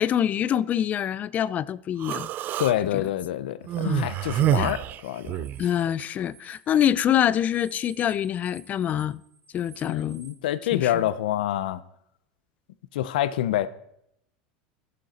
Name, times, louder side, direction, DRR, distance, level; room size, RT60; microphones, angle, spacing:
voice 1, 0.0-2.3 2.9-3.0 3.8-4.7 5.6-9.2 9.5-10.2 10.7-10.9, left 10 dB, 35° left, 0.4 m, -25 dB
Human voice, 2.0-2.7 3.7-5.6, right 13 dB, 40° right, 0.3 m, -27 dB
voice 2, 2.6-5.4 9.8-11.8 12.9-13.7, left 12 dB, 85° left, 0.6 m, -27 dB
sound 1, 5.3-10.3, right 4 dB, ahead, 3.3 m, -53 dB
14.5 x 6.5 x 4.2 m
supercardioid pair, 120°, 5 cm